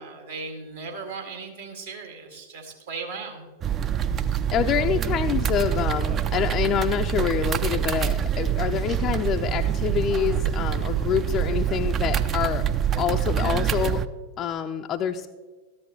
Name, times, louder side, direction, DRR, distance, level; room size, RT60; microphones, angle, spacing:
voice 1, 0.0-3.4, right 4 dB, 65° right, 2 dB, 2.1 m, -37 dB
sound 1, 3.6-14.1, right 9 dB, 25° right, 0.4 m, -25 dB
voice 2, 4.5-12.7 13.0-14.0 14.4-15.3, left 9 dB, 30° left, 4 dB, 0.4 m, -26 dB
13.5 x 10.5 x 3.1 m, 1.4 s
figure-of-eight pair, 90°, 0 cm